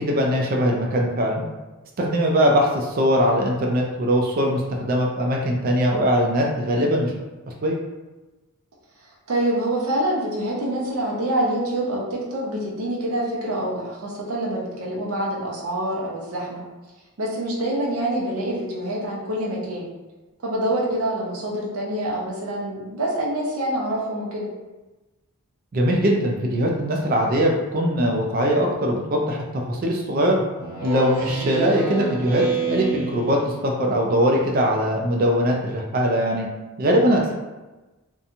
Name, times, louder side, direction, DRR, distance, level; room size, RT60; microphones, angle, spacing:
voice 1, 0.0-1.4 2.0-7.1 7.6-7.8 25.7-30.4 30.8-36.5 36.8-37.3, equal, 40° right, 0 dB, 0.3 m, -21 dB
voice 2, 9.3-16.6 17.2-19.9 20.4-24.5, right 1 dB, 75° right, -4 dB, 0.7 m, -26 dB
Speech synthesizer, 30.6-33.6, right 4 dB, 10° right, 0.6 m, -28 dB
2.7 x 2.2 x 2.5 m, 1.1 s
head